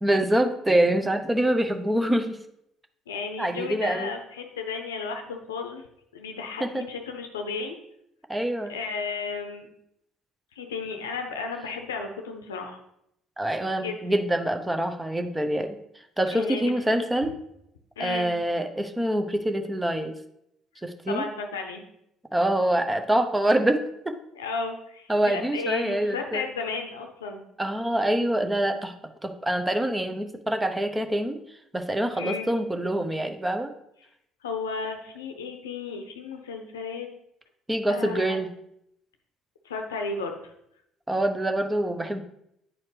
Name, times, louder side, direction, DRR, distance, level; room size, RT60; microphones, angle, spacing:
voice 1, 0.0-2.4 3.4-4.1 6.6-6.9 8.3-8.7 13.4-15.8 16.2-17.4 18.0-20.1 20.8-21.3 22.3-23.8 24.0-24.1 25.1-26.4 27.6-28.9 29.2-31.4 31.7-33.7 37.7-38.5 41.1-42.2, right 1 dB, 15° right, 7 dB, 0.8 m, -25 dB
voice 2, 3.1-5.8 6.1-7.8 8.7-9.7 10.6-12.8 13.8-14.0 16.3-17.0 18.0-18.3 21.1-21.8 24.4-27.4 32.1-32.5 34.4-37.1 37.9-38.4 39.6-40.3, left 4 dB, 85° left, 4 dB, 0.7 m, -33 dB
8.9 x 4.3 x 3.3 m, 0.77 s
hypercardioid pair, 55°, 0 cm